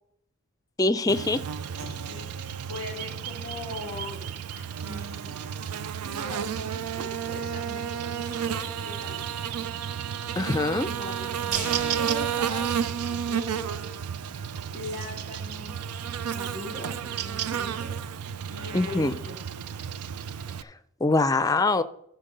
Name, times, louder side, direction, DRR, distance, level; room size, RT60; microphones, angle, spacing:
voice 1, 0.8-1.4 10.4-10.9 18.7-19.1 21.0-21.8, left 2 dB, 15° left, 13 dB, 0.4 m, -23 dB
Buzz, 1.1-20.6, right 8 dB, 90° right, 0.4 m, -32 dB
voice 2, 1.7-4.3 4.5-5.5 6.0-9.3 10.4-14.4 14.7-15.8 16.3-17.9 18.5-19.4, left 1 dB, 70° right, -2 dB, 3.0 m, -40 dB
sound 1, 11.5-13.7 14.0-14.1 14.4-14.5, right 2 dB, 35° right, 3.6 m, -39 dB
13.0 x 4.6 x 6.7 m, 0.73 s
head